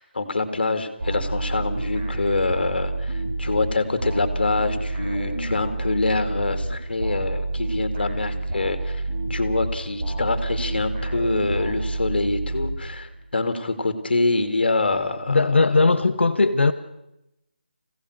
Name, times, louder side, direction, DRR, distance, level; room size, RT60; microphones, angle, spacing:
voice 1, 0.0-9.0 9.3-15.4, left 3 dB, 60° left, 8 dB, 2.4 m, -25 dB
sound 1, 1.0-13.2, right 2 dB, 35° right, 4.8 m, -28 dB
voice 2, 15.3-16.7, left 3 dB, 85° left, 8 dB, 1.2 m, -18 dB
25.0 x 16.5 x 6.7 m, 0.88 s
figure-of-eight pair, 175°, 6 cm